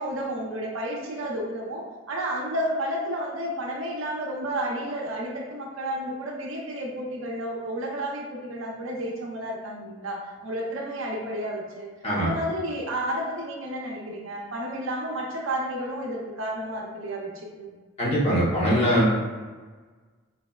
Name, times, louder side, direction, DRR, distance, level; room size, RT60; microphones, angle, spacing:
voice 1, 0.0-11.9 12.2-17.7, right 1 dB, 70° right, -1 dB, 0.7 m, -31 dB
voice 2, 18.0-19.1, equal, 30° left, -6 dB, 0.9 m, -22 dB
4.1 x 3.3 x 2.3 m, 1.4 s
head